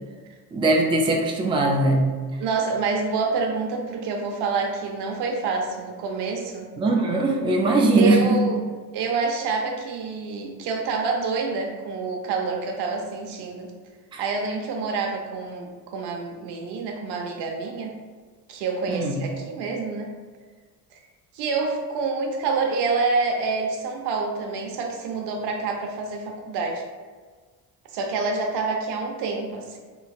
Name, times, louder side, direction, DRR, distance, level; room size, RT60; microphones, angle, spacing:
voice 1, 0.5-2.0 6.8-8.4 14.1-14.2 18.9-19.3, right 2 dB, 10° right, 0 dB, 0.4 m, -20 dB
voice 2, 2.4-6.7 7.9-8.6 8.9-13.7 14.2-17.9 18.5-20.1 20.9-21.0 21.3-26.8 27.9-29.8, right 4 dB, 70° right, 2 dB, 0.6 m, -27 dB
3.1 x 2.7 x 2.3 m, 1.5 s
supercardioid pair, 70°, 42 cm